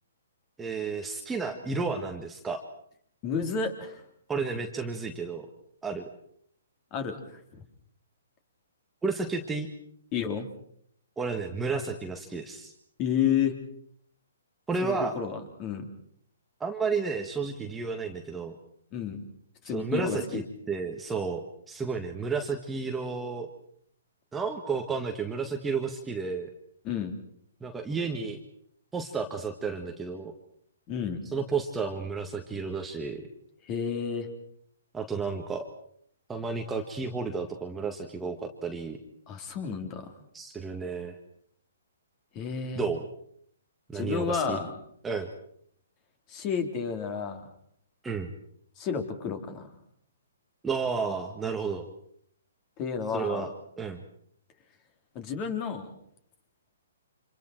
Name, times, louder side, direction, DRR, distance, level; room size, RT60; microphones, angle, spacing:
voice 1, 0.6-2.6 4.3-5.5 5.8-6.1 9.0-9.7 11.2-12.7 14.7-15.2 16.6-18.6 19.7-23.5 24.3-26.5 27.6-28.4 28.9-30.3 31.3-33.2 34.9-35.7 36.3-39.0 40.3-41.2 42.7-43.1 43.9-44.6 45.0-45.3 48.0-48.3 50.6-51.9 53.1-53.5 53.8-54.0, right 4 dB, 10° right, 3 dB, 1.7 m, -32 dB
voice 2, 3.2-4.0 6.9-7.2 7.5-7.6 10.1-10.5 13.0-13.5 14.8-15.9 18.9-19.3 19.6-20.4 26.8-27.2 30.9-31.2 33.7-34.3 39.3-40.1 42.3-42.8 43.9-44.7 46.3-47.4 48.8-49.7 52.8-53.4 55.2-55.9, left 7 dB, 30° left, 6 dB, 3.5 m, -31 dB
30.0 x 26.5 x 4.5 m, 0.65 s
hypercardioid pair, 140°, 0 cm